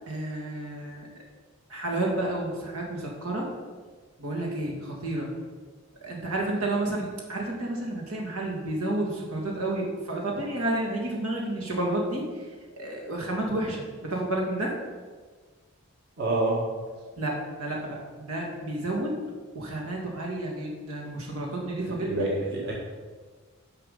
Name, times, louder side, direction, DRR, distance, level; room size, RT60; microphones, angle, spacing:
voice 1, 0.1-1.1 1.7-3.5 4.2-5.3 6.0-12.5 12.7-14.7 17.2-19.2 19.5-22.3, right 1 dB, 80° right, -2 dB, 2.3 m, -31 dB
voice 2, 16.2-16.6 21.9-22.7, right 2 dB, 50° right, -3 dB, 1.8 m, -27 dB
10.0 x 6.0 x 5.6 m, 1.4 s
head